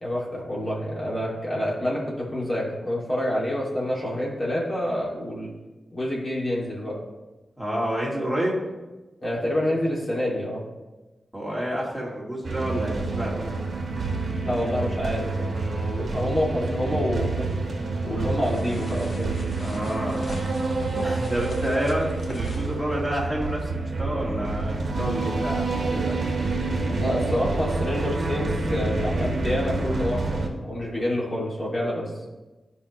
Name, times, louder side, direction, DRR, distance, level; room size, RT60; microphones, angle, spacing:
voice 1, 0.0-5.5 5.9-7.0 9.2-10.7 14.4-17.5 18.0-19.5 26.8-32.1, left 1 dB, 40° left, -5 dB, 2.5 m, -27 dB
voice 2, 7.6-8.6 11.3-13.6 19.6-20.3 21.0-26.2, equal, ahead, -5 dB, 2.3 m, -29 dB
sound 1, 12.4-30.5, right 3 dB, 60° right, 1.2 m, -28 dB
sound 2, 18.4-22.8, left 2 dB, 55° left, 0.9 m, -41 dB
14.0 x 5.2 x 3.2 m, 1.1 s
wide cardioid pair, 145°, 0 cm